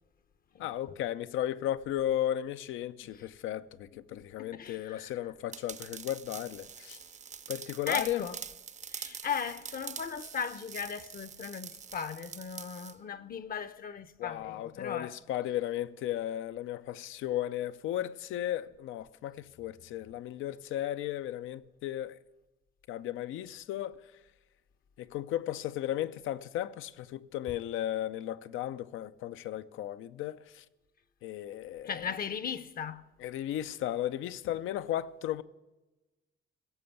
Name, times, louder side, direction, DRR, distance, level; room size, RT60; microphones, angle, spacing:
voice 1, 0.6-7.0 7.5-8.2 14.2-22.2 22.9-24.1 25.0-30.6 31.2-32.2 33.2-35.4, left 12 dB, 85° left, 0.5 m, -35 dB
voice 2, 4.1-5.1 7.9-8.4 8.9-15.1 31.8-33.0, left 7 dB, 50° left, 0.7 m, -37 dB
sound 1, 5.5-12.9, right 7 dB, 35° right, 0.6 m, -44 dB
16.5 x 6.8 x 7.0 m
cardioid pair, 90°, 20 cm